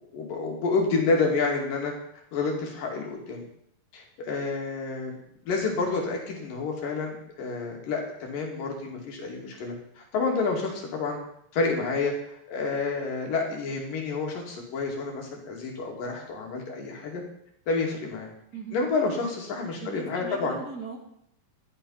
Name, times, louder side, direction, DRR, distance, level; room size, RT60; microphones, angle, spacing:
voice 1, 0.1-1.9 2.3-3.4 3.9-5.1 5.5-11.2 11.5-17.2 17.7-18.3 18.7-20.6, left 4 dB, 75° left, 0 dB, 4.1 m, -29 dB
voice 2, 19.8-21.0, right 5 dB, 30° right, 1 dB, 2.6 m, -39 dB
13.5 x 11.5 x 5.7 m, 0.72 s
omnidirectional pair, 3.9 m